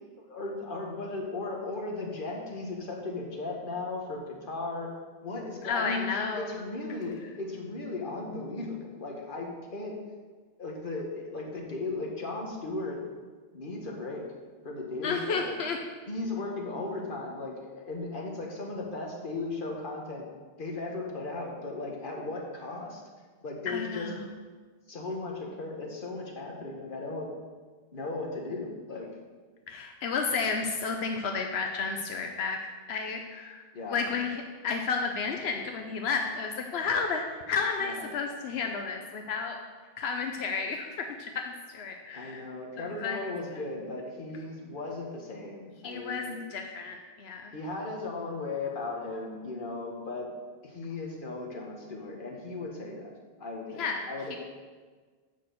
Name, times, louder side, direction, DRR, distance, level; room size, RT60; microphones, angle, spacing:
voice 1, 0.2-4.9 5.2-6.1 6.4-10.0 10.6-13.0 13.5-14.3 14.6-15.6 16.1-20.3 20.6-23.0 23.4-24.1 24.9-27.3 27.9-29.1 33.7-34.0 37.8-38.1 42.1-46.4 47.5-50.3 50.6-53.1 53.4-54.4, left 3 dB, 55° left, -1 dB, 1.6 m, -36 dB
voice 2, 5.6-6.6 15.0-15.8 23.7-24.3 29.7-32.6 32.9-39.6 40.0-42.4 42.8-43.2 43.5-43.6 45.8-47.5 53.8-54.0 54.3-54.4, left 5 dB, 90° left, 3 dB, 1.0 m, -32 dB
7.2 x 6.0 x 7.0 m, 1.5 s
omnidirectional pair, 1.0 m